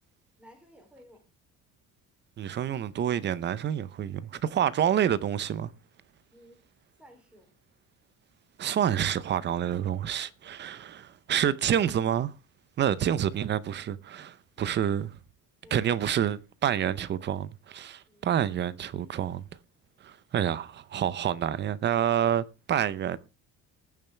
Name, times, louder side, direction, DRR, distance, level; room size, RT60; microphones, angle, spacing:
voice 1, 0.4-1.2 6.3-6.6 7.0-7.6 14.6-14.7 15.6-15.9 18.1-18.3, equal, 5° right, 3.0 m, -55 dB
voice 2, 2.4-5.7 8.6-12.3 12.8-15.1 15.7-19.4 20.0-23.2, right 9 dB, 30° right, 0.6 m, -28 dB
20.0 x 7.1 x 3.3 m
cardioid pair, 170°, 34 cm